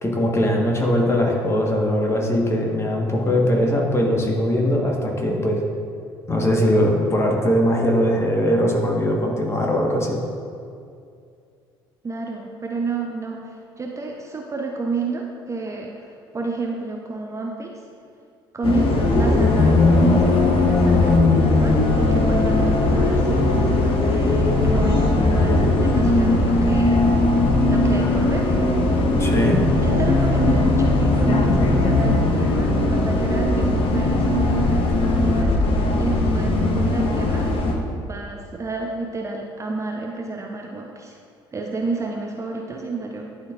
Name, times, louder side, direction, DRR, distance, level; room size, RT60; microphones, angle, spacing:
voice 1, 0.0-5.6 6.3-10.2 29.2-29.6, equal, 20° left, -1 dB, 1.4 m, -20 dB
voice 2, 12.0-17.8 18.5-27.0 27.7-28.5 29.8-35.5 36.0-37.5 38.0-41.2 41.5-43.5, right 3 dB, 25° right, 1 dB, 0.6 m, -30 dB
Bus, 18.6-37.7, left 2 dB, 45° left, 0.9 m, -18 dB
11.0 x 4.5 x 2.5 m, 2.4 s
figure-of-eight pair, 55°, 13 cm